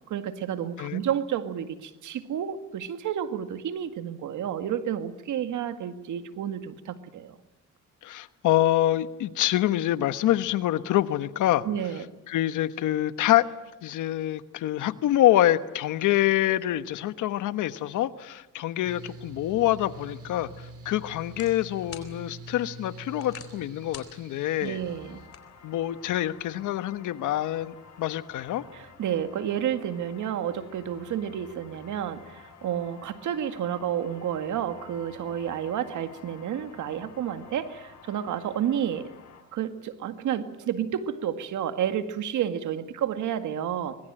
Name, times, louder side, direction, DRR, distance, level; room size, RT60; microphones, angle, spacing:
voice 1, 0.1-7.4 11.6-12.0 24.6-25.2 28.7-39.1 39.5-44.0, right 9 dB, 75° right, 2.0 m, -30 dB
voice 2, 8.0-11.6 12.3-13.5 13.8-24.8 25.6-28.6, left 14 dB, 85° left, 1.3 m, -26 dB
Mechanical fan, 18.8-25.3, right 2 dB, 50° right, 4.6 m, -45 dB
sound 1, 20.1-26.2, left 7 dB, 50° left, 4.1 m, -51 dB
sound 2, 24.6-39.4, left 6 dB, 65° left, 6.4 m, -51 dB
24.5 x 22.5 x 8.9 m
cardioid pair, 90°, 30 cm